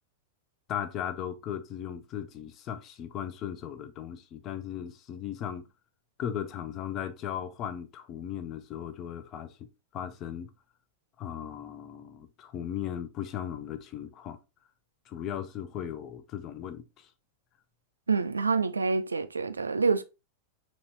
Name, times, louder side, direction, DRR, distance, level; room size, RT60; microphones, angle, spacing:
voice 1, 0.7-5.7 6.2-9.6 9.9-10.5 11.2-14.4 15.1-17.1, left 9 dB, 35° left, 0.5 m, -37 dB
voice 2, 18.1-20.0, right 4 dB, 75° right, 0.3 m, -27 dB
4.1 x 3.0 x 2.9 m
figure-of-eight pair, 90°, 0 cm